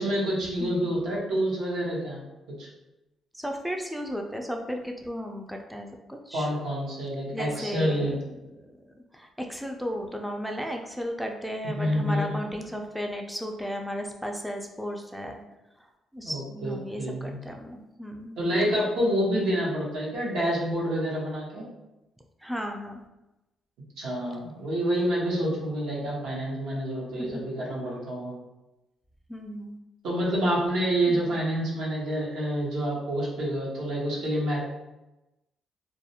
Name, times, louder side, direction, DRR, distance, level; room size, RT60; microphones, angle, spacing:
voice 1, 0.0-2.2 2.6-2.7 6.3-8.1 11.7-12.4 16.2-17.4 18.4-21.6 24.0-28.3 30.0-34.6, equal, 85° right, -5 dB, 0.8 m, -28 dB
voice 2, 0.6-0.9 3.3-6.5 7.3-8.1 8.5-15.4 15.8-18.4 22.4-23.0 27.2-27.4 29.3-29.8 31.1-31.3, equal, ahead, 2 dB, 0.3 m, -35 dB
2.3 x 2.1 x 2.7 m, 0.97 s
cardioid pair, 90°, 0 cm